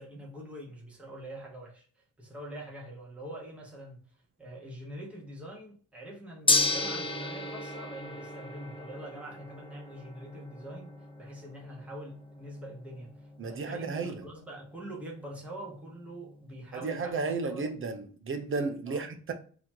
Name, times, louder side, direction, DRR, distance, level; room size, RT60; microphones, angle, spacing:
voice 1, 0.0-17.7 18.9-19.1, right 1 dB, 5° right, 1.3 m, -44 dB
Gong, 6.5-16.7, left 3 dB, 15° left, 0.7 m, -35 dB
voice 2, 13.4-14.3 16.7-19.3, right 4 dB, 45° right, 0.8 m, -33 dB
4.1 x 2.9 x 2.8 m
cardioid pair, 100°, 30 cm